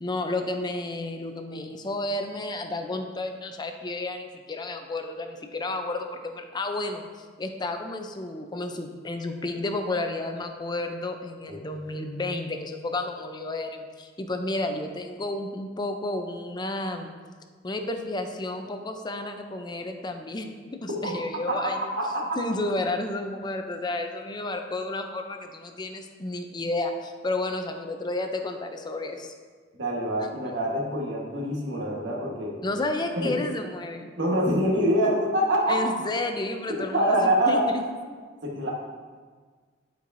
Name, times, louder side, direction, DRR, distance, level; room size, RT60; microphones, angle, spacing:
voice 1, 0.0-7.0 7.4-17.1 17.6-21.9 22.4-29.3 30.2-30.3 32.6-34.1 35.7-37.8, left 2 dB, 25° left, 5 dB, 0.5 m, -31 dB
voice 2, 21.5-22.4 29.8-32.6 33.1-33.4 34.2-35.9 36.9-37.7 38.4-38.7, right 1 dB, 90° right, -2 dB, 1.4 m, -25 dB
11.0 x 4.7 x 2.6 m, 1.5 s
head